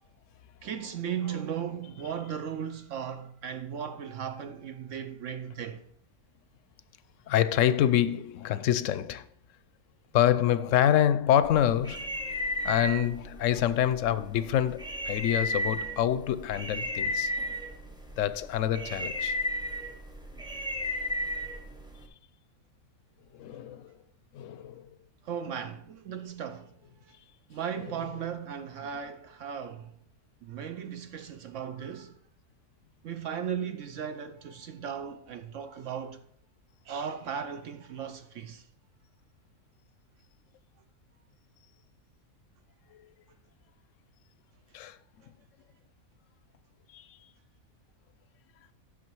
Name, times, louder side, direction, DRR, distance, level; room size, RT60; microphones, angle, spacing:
voice 1, 0.6-5.8 25.3-26.7 27.5-29.9 30.4-32.1 33.0-36.2 36.9-38.6, right 8 dB, 65° right, 0.9 m, -36 dB
voice 2, 7.3-9.3 10.1-12.1 12.6-17.3 18.2-19.4 23.3-23.9 24.3-24.8 27.8-27.9 42.9-43.1 44.7-45.0 46.9-47.2, left 11 dB, 70° left, 0.8 m, -26 dB
sound 1, 11.4-22.1, left 1 dB, 5° right, 0.7 m, -34 dB
8.6 x 6.2 x 4.6 m
omnidirectional pair, 1.5 m